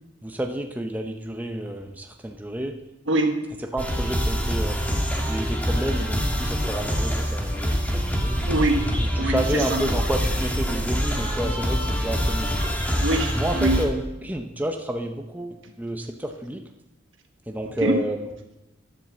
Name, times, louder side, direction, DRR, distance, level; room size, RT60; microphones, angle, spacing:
voice 1, 0.2-2.8 3.7-4.8 5.3-8.4 9.0-12.5 13.4-16.6 17.5-18.3, right 1 dB, 10° right, 3 dB, 0.7 m, -30 dB
voice 2, 3.1-3.4 8.5-8.9 9.2-9.8 13.0-13.8 17.8-18.0, right 1 dB, 70° right, 4 dB, 1.5 m, -23 dB
sound 1, 3.8-13.9, equal, 10° left, 1.6 m, -25 dB
10.5 x 7.0 x 7.2 m, 0.95 s
head